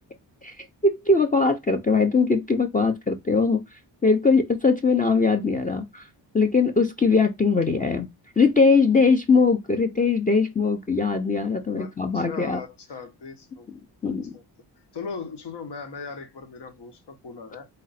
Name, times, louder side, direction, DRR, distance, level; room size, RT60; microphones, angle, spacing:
voice 1, 0.4-6.1 6.3-8.1 8.4-12.6 14.0-14.3, left 4 dB, 20° left, 0.7 m, -21 dB
voice 2, 11.8-13.7 14.0-14.4 14.9-17.7, left 5 dB, 65° left, 1.4 m, -38 dB
4.1 x 2.6 x 4.1 m
cardioid pair, 80°, 44 cm